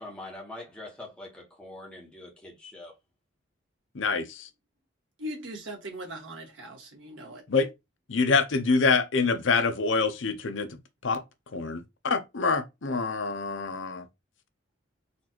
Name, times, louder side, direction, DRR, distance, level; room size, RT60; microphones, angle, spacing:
voice 1, 0.0-2.9, left 2 dB, 5° left, 1.1 m, -43 dB
voice 2, 3.9-4.5 7.5-7.7 8.1-10.7 11.0-11.2 11.5-14.0, left 4 dB, 75° left, 0.7 m, -26 dB
voice 3, 5.2-7.4, equal, 75° right, 1.6 m, -39 dB
4.3 x 2.5 x 4.3 m
head